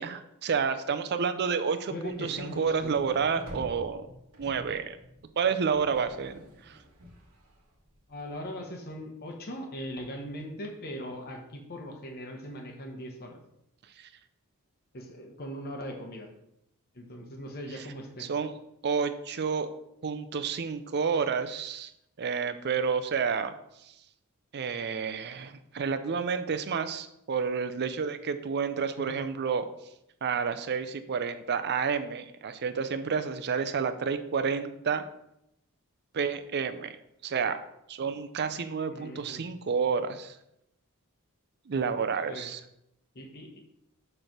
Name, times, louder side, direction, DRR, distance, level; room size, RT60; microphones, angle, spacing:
voice 1, 0.0-4.1 4.4-5.0 5.4-6.8 14.0-14.1 18.2-18.5 18.8-19.7 20.0-21.9 22.2-23.5 24.5-29.6 30.2-35.0 36.1-37.0 37.2-37.6 37.9-40.4 41.7-42.6, right 6 dB, 50° right, 9 dB, 0.5 m, -30 dB
voice 2, 1.9-3.0 8.1-13.4 14.9-16.3 16.9-18.3 29.0-29.2 38.9-39.4 42.3-42.5 43.1-43.5, equal, 45° left, 2 dB, 0.9 m, -40 dB
sound 1, 2.0-8.4, equal, 70° right, 1.4 m, -48 dB
6.6 x 3.3 x 5.9 m, 0.81 s
head